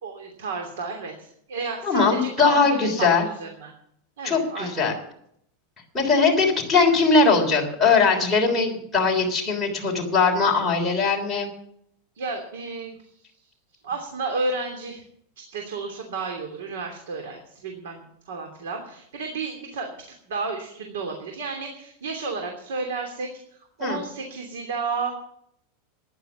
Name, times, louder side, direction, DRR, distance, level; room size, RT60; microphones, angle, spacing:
voice 1, 0.0-3.7 4.2-4.8 12.1-13.1 13.8-15.0 15.4-19.9 20.3-25.1, right 4 dB, 90° right, 3 dB, 2.9 m, -32 dB
voice 2, 1.8-3.3 4.2-4.9 5.9-11.5 23.8-24.0, left 4 dB, 5° left, -4 dB, 3.5 m, -20 dB
14.5 x 10.5 x 7.2 m, 0.70 s
supercardioid pair, 170°, 0 cm